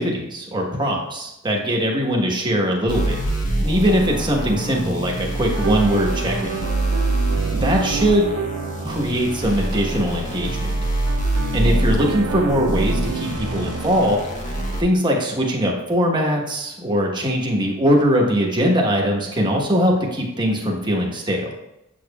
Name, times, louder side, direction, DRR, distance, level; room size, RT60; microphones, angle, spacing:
voice 1, 0.0-3.2 3.6-6.5 7.6-8.3 8.8-10.7 11.5-14.2 14.8-21.5, equal, 20° right, -1 dB, 1.2 m, -21 dB
sound 1, 2.9-14.8, right 1 dB, 35° left, 1.2 m, -24 dB
sound 2, 5.5-14.2, right 7 dB, 75° right, 0.4 m, -31 dB
7.6 x 7.1 x 2.3 m, 0.89 s
head